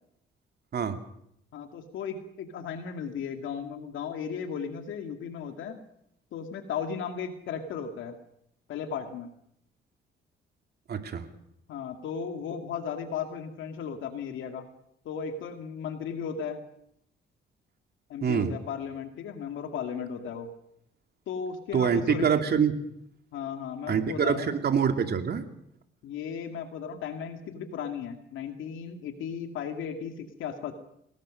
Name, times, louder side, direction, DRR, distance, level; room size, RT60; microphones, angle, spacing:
voice 1, 1.5-5.7 6.3-8.2 8.7-9.3 11.7-14.7 15.0-16.6 18.1-20.5 21.3-22.3 23.3-24.5 26.0-30.7, left 7 dB, 80° left, 6 dB, 2.3 m, -35 dB
voice 2, 10.9-11.2 18.2-18.5 21.7-22.7 23.9-25.4, right 7 dB, 55° right, 6 dB, 2.7 m, -25 dB
23.0 x 19.5 x 6.5 m, 0.73 s
cardioid pair, 90°, 20 cm